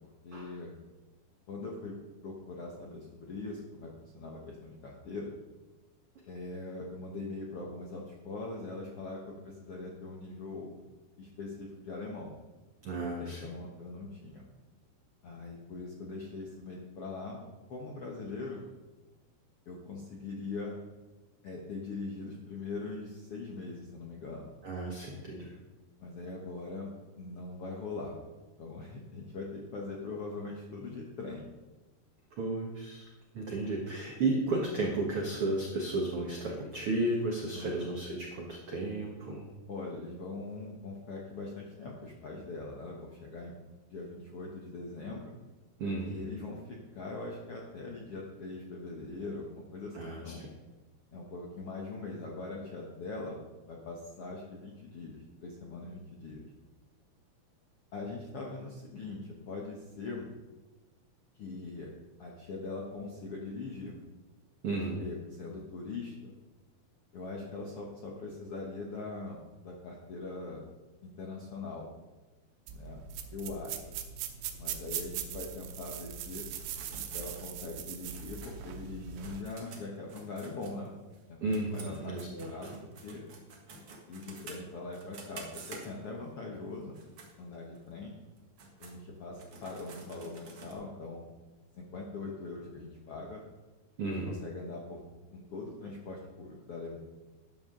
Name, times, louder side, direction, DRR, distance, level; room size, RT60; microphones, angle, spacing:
voice 1, 0.0-0.8 1.5-1.9 2.2-5.3 6.3-10.7 11.2-12.3 13.2-14.5 15.2-17.4 17.7-18.6 19.6-20.8 21.4-24.5 26.0-26.9 27.2-28.2 28.6-31.4 37.5-37.9 39.7-43.5 43.9-45.3 46.0-50.4 51.1-53.4 53.6-56.5 57.9-60.2 61.3-61.9 62.2-64.0 65.0-66.3 67.1-70.6 71.0-71.9 72.7-73.0 73.3-73.9 74.6-76.4 77.1-80.9 81.3-82.8 83.0-83.3 84.1-87.0 87.4-88.1 88.8-91.3 91.8-93.4 94.3-95.0 95.3-97.0, left 3 dB, 90° left, -1 dB, 1.2 m, -41 dB
voice 2, 12.8-13.4 24.6-25.6 32.3-33.1 33.3-39.5 45.8-46.3 49.9-50.5 64.6-65.0 81.4-82.7 94.0-94.4, right 2 dB, 70° right, 0 dB, 1.3 m, -33 dB
sound 1, 72.7-79.4, right 8 dB, 90° right, 3.2 m, -40 dB
sound 2, 76.5-81.2 81.5-86.3 86.8-87.3 87.8-87.9 88.4-90.7, right 3 dB, 50° right, 1.8 m, -50 dB
13.0 x 10.5 x 3.8 m, 1.2 s
omnidirectional pair, 4.8 m